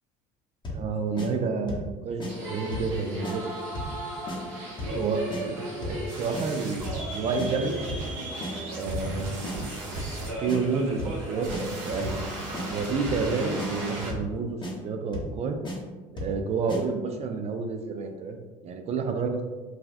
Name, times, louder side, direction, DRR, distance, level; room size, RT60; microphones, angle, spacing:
Basic hithat, 0.6-0.9 1.2-1.3 1.7-1.9 2.2-2.3 2.7-2.9 3.2-3.4 3.8-4.0 4.3-4.4 4.8-5.0 5.3-5.4 5.8-6.0 6.3-6.5 6.9-7.1 7.4-7.5 7.9-8.1 8.4-8.5 8.9-9.1 9.4-9.6 10.0-10.2 10.5-10.6 11.0-11.2 11.5-11.6 12.0-12.3 12.5-12.7 13.1-13.3 13.6-13.7 14.1-14.3 14.6-14.7 15.1-15.4 15.6-15.8 16.2-16.4 16.7-16.8, left 1 dB, 25° left, 0.8 m, -34 dB
voice 1, 0.7-3.5 4.9-7.8 8.8-9.7 10.4-12.3 12.7-14.6 14.8-15.6 16.1-18.4 18.6-19.4, right 4 dB, 40° right, 5 dB, 0.4 m, -30 dB
sound 1, 2.3-14.1, right 1 dB, 85° right, 0.7 m, -35 dB
3.3 x 2.3 x 2.5 m, 1.3 s
supercardioid pair, 80°, 17 cm